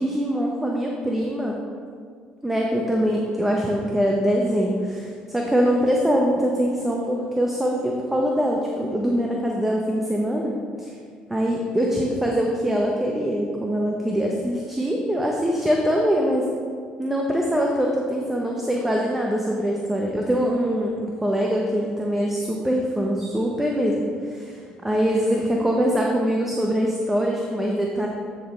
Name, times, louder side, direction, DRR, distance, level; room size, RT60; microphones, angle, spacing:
voice 1, 0.0-1.6 2.4-10.5 10.8-10.9 11.3-16.5 17.0-28.1, equal, 10° right, -1 dB, 0.7 m, -23 dB
8.5 x 6.1 x 3.2 m, 2.1 s
cardioid pair, 100°, 3 cm